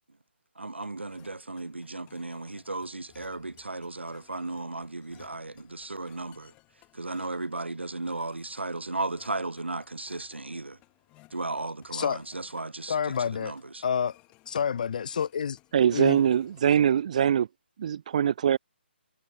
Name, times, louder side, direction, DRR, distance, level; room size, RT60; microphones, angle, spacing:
voice 1, 0.6-6.5 6.9-10.8 11.3-13.8, right 2 dB, 80° right, 0.5 m, -35 dB
sound 1, 0.8-16.8, left 22 dB, 20° left, 4.8 m, -61 dB
voice 2, 11.9-12.2 12.9-13.5 13.8-14.2 14.5-15.6 15.9-16.2, left 7 dB, 45° left, 0.7 m, -28 dB
voice 3, 15.7-17.5 17.8-18.6, right 9 dB, 40° right, 1.0 m, -23 dB
figure-of-eight pair, 140°, 6 cm